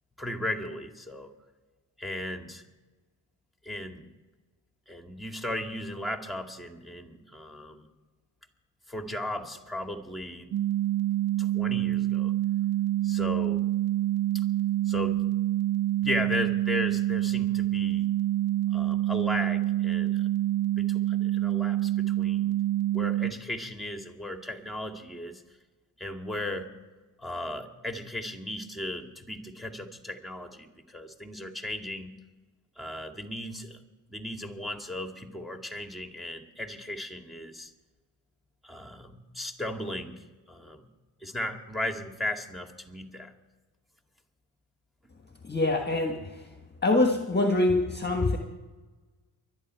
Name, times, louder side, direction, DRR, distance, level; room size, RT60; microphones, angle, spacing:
voice 1, 0.2-1.3 2.0-2.6 3.6-4.1 4.9-7.9 8.9-10.5 11.4-12.3 13.0-13.6 14.3-14.4 14.9-15.2 16.0-18.1 18.7-20.3 20.8-22.5 22.9-25.4 26.0-26.7 27.2-32.1 32.8-33.8 34.1-37.7 38.6-40.9 41.2-43.3, left 1 dB, ahead, 5 dB, 2.2 m, -36 dB
sound 1, 10.5-23.3, right 14 dB, 50° right, 0.6 m, -27 dB
voice 2, 45.4-46.5 46.8-48.4, left 2 dB, 20° left, 4 dB, 1.6 m, -25 dB
24.0 x 9.3 x 4.7 m, 1.3 s
hypercardioid pair, 50°, 47 cm